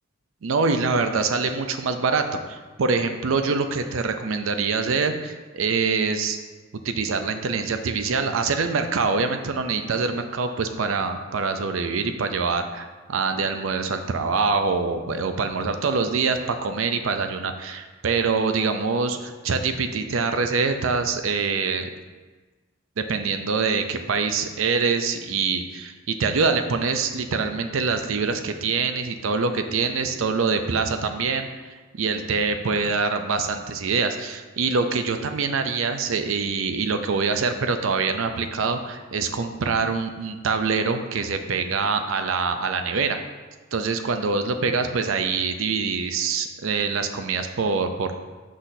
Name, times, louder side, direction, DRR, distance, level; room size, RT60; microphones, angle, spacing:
voice 1, 0.4-6.4 6.8-21.9 23.0-31.5 31.9-43.2 43.7-48.1, right 4 dB, 70° right, 7 dB, 0.5 m, -24 dB
6.2 x 5.7 x 2.7 m, 1.3 s
head